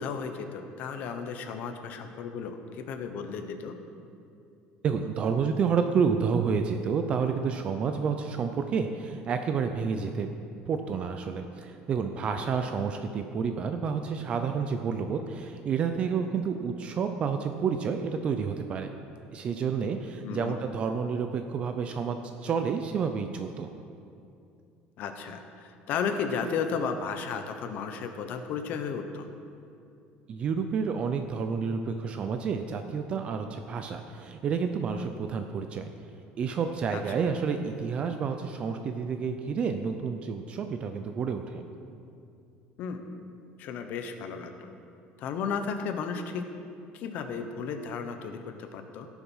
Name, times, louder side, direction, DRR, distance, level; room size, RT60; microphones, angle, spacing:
voice 1, 0.0-3.8 20.2-20.6 25.0-29.3 36.9-37.0 42.8-43.0 43.6-44.7 45.2-46.4 46.9-49.1, left 6 dB, 45° left, 7 dB, 0.9 m, -34 dB
voice 2, 4.8-10.3 10.7-18.9 19.3-23.7 30.3-35.8 36.4-41.7, right 6 dB, 30° right, 6 dB, 0.5 m, -29 dB
16.5 x 7.1 x 5.5 m, 2.6 s
cardioid pair, 180°, 4 cm